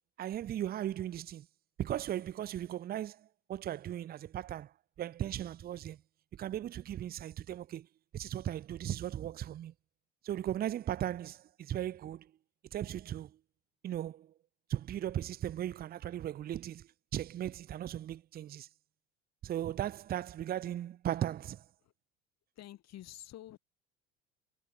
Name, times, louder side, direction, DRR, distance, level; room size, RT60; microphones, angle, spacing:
voice 1, 0.2-1.5 1.8-4.7 5.0-6.0 6.3-7.9 8.1-9.7 10.2-12.3 12.7-13.4 13.8-14.3 14.7-18.7 19.4-21.6, right 11 dB, 25° right, 0.6 m, -37 dB
voice 2, 22.5-23.6, left 13 dB, 45° left, 5.2 m, -49 dB
figure-of-eight pair, 65°, 37 cm